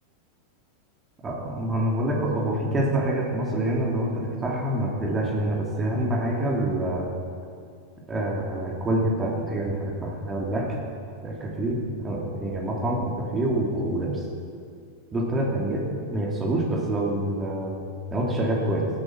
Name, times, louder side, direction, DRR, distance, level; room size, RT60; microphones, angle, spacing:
voice 1, 1.2-7.1 8.1-10.8 11.2-14.2 15.1-17.8 18.1-18.9, right 1 dB, 20° right, -1 dB, 3.1 m, -26 dB
17.5 x 11.5 x 6.1 m, 2.2 s
figure-of-eight pair, 90°, 0 cm